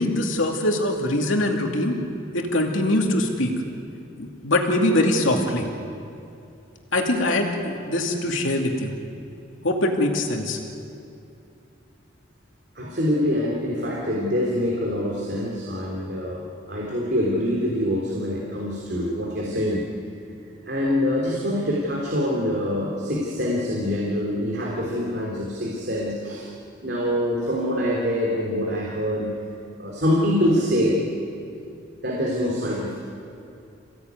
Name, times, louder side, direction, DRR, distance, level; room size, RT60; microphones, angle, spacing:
voice 1, 0.0-1.9 2.3-3.5 4.2-5.7 6.9-8.9 9.6-10.6, left 1 dB, 80° left, 1 dB, 2.7 m, -23 dB
voice 2, 12.8-19.9 20.6-26.5 26.8-29.3 29.8-31.1 32.0-32.9, equal, 55° right, -3 dB, 3.4 m, -25 dB
27.5 x 17.0 x 9.5 m, 2.6 s
head